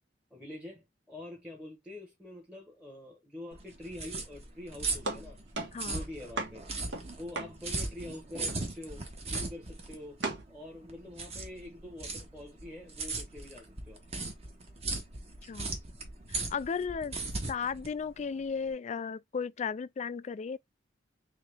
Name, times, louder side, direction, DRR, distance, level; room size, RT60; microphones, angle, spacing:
voice 1, 0.3-5.4 5.8-6.6 7.2-10.2 10.5-14.0 15.9-16.0, left 1 dB, 5° right, 1.0 m, -45 dB
sound 1, 3.5-18.7, right 3 dB, 35° right, 1.1 m, -38 dB
sound 2, 5.0-8.1 8.5-8.9 9.3-9.6 10.2-10.4, right 2 dB, 70° right, 1.3 m, -38 dB
voice 2, 5.7-6.0 15.5-15.7 16.3-17.1 17.5-20.6, left 6 dB, 40° left, 0.3 m, -35 dB
3.6 x 3.3 x 3.3 m
head